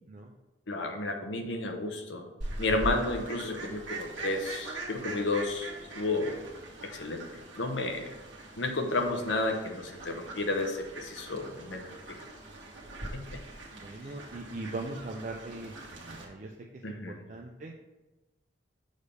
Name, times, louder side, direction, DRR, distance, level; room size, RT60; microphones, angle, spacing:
voice 1, 0.7-2.3 2.6-6.4 6.9-7.2 7.6-8.1 8.6-11.8 13.1-13.2 16.8-17.2, left 2 dB, 75° left, 4 dB, 0.8 m, -32 dB
Fowl, 2.4-16.3, right 1 dB, 80° right, 1.3 m, -42 dB
voice 2, 13.8-16.5 16.9-17.0 17.3-17.7, right 2 dB, 40° right, 0 dB, 0.4 m, -40 dB
6.4 x 3.4 x 5.3 m, 1.1 s
head